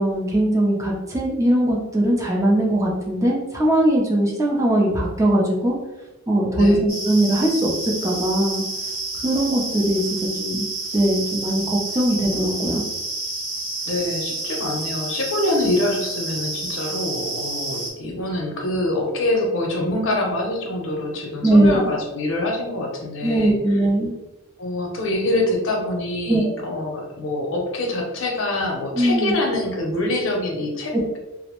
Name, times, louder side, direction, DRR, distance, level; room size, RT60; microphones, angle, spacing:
voice 1, 0.0-5.7 6.3-8.6 9.2-10.7 10.9-12.8 21.4-21.8 23.2-24.1 26.3-26.5 29.0-29.3, right 1 dB, 15° right, -3 dB, 0.4 m, -20 dB
voice 2, 6.5-6.9 13.8-23.5 24.6-31.2, left 1 dB, 65° left, 0 dB, 0.6 m, -25 dB
sound 1, 6.9-17.9, right 2 dB, 80° right, 0.9 m, -30 dB
2.5 x 2.0 x 2.9 m, 1.0 s
head